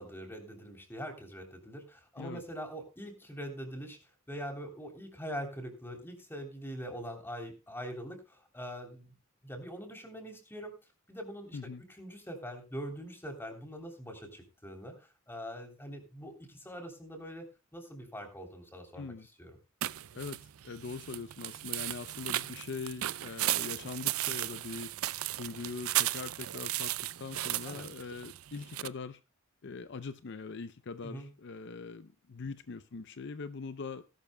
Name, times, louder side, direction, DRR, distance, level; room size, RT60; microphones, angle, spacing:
voice 1, 0.0-4.0 4.3-9.1 9.4-10.7 11.1-11.6 12.0-19.5 27.6-27.9 31.0-31.3, equal, 10° left, 4 dB, 3.2 m, -43 dB
voice 2, 19.0-19.3 20.1-24.9 25.4-26.9 27.2-29.2 29.6-34.0, left 4 dB, 55° left, 12 dB, 0.6 m, -42 dB
sound 1, 19.8-28.9, right 14 dB, 85° right, 0.5 m, -35 dB
19.0 x 12.0 x 2.2 m, 0.30 s
head